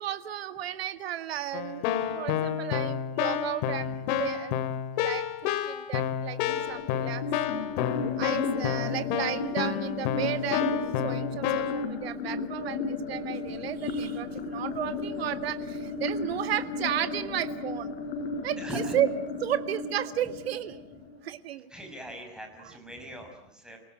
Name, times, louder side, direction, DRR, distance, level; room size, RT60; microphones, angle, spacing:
voice 1, 0.0-4.5 4.9-6.4 6.7-7.4 8.2-18.0 18.4-19.1 19.4-20.8 21.2-21.7 22.6-22.8, right 12 dB, 90° right, 10 dB, 2.0 m, -33 dB
Keyboard (musical), 1.5-11.8, left 9 dB, 50° left, 2.5 m, -30 dB
sound 1, 6.4-21.4, left 4 dB, 75° left, 6.0 m, -34 dB
voice 2, 18.6-19.0 21.7-23.8, equal, ahead, 3 dB, 6.1 m, -40 dB
30.0 x 19.0 x 9.2 m, 0.71 s
supercardioid pair, 160°, 30 cm